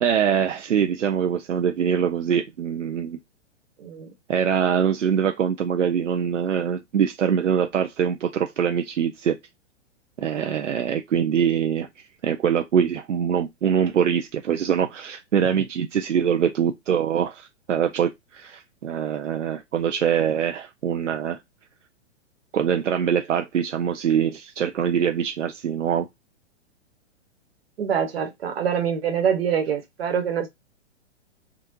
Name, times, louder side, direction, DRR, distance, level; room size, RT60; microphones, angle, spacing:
voice 1, 0.0-3.2 4.3-9.4 10.2-21.4 22.5-26.1, right 8 dB, 80° right, 0.5 m, -23 dB
voice 2, 3.8-4.1 27.8-30.5, right 7 dB, 55° right, 1.2 m, -25 dB
3.6 x 2.4 x 2.7 m
figure-of-eight pair, 110°, 36 cm